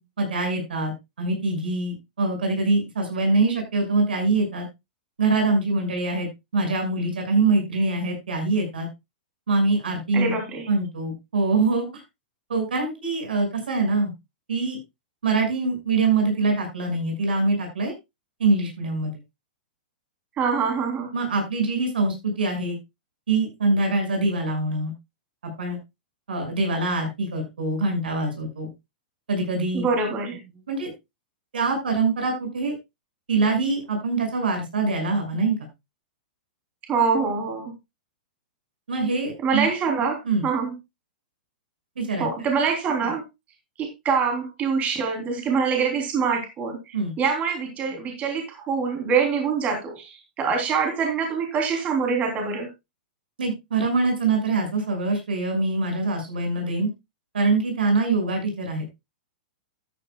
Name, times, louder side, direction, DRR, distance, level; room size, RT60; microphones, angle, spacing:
voice 1, 0.2-0.9 1.2-4.7 5.2-6.3 6.5-8.9 9.5-10.4 10.7-12.0 12.5-14.1 14.5-14.8 15.2-17.9 18.4-19.2 21.1-22.8 23.3-24.9 25.4-25.8 26.3-28.7 29.3-29.8 30.7-30.9 31.5-32.7 33.3-35.7 38.9-39.7 40.2-40.4 42.0-42.3 46.9-47.1 53.4-56.9 57.3-58.8, right 3 dB, 85° right, 4 dB, 6.3 m, -24 dB
voice 2, 10.1-10.7 20.4-21.1 29.7-30.4 36.9-37.7 39.4-40.7 42.2-43.2 43.8-52.7, right 5 dB, 30° right, 3 dB, 3.4 m, -25 dB
13.5 x 10.0 x 2.4 m, 0.22 s
hypercardioid pair, 125°, 5 cm